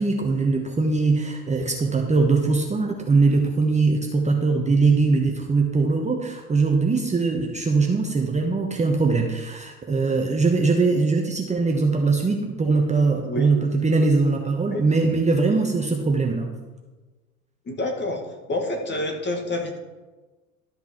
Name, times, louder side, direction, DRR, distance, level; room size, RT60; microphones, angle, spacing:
voice 1, 0.0-16.5, right 3 dB, 15° right, 1 dB, 1.0 m, -21 dB
voice 2, 17.7-18.2 18.5-19.8, left 1 dB, 25° left, 4 dB, 1.8 m, -27 dB
12.5 x 5.9 x 4.5 m, 1.2 s
hypercardioid pair, 80°, 44 cm